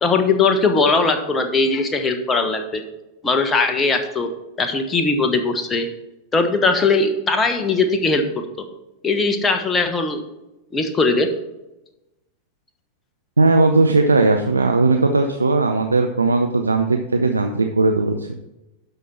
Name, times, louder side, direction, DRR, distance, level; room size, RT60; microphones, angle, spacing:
voice 1, 0.0-2.8 3.2-4.3 4.6-5.9 6.3-8.2 8.6-8.7 9.0-10.2 10.7-11.3, left 3 dB, 20° left, 6 dB, 1.2 m, -19 dB
voice 2, 13.4-18.3, right 3 dB, 80° right, 5 dB, 0.6 m, -17 dB
12.0 x 5.3 x 4.3 m, 0.96 s
figure-of-eight pair, 90°, 0 cm